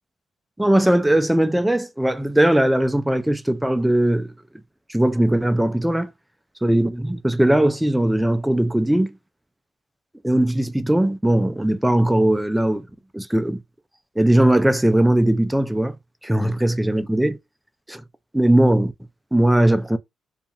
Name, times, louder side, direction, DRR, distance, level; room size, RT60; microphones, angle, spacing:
voice 1, 0.6-4.3 4.9-6.1 6.6-9.1 10.2-12.9 13.1-13.6 14.2-15.9 16.2-17.4 17.9-18.0 18.3-18.9 19.3-20.0, right 1 dB, 5° right, 0.4 m, -19 dB
2.4 x 2.4 x 2.8 m
cardioid pair, 90°, 0 cm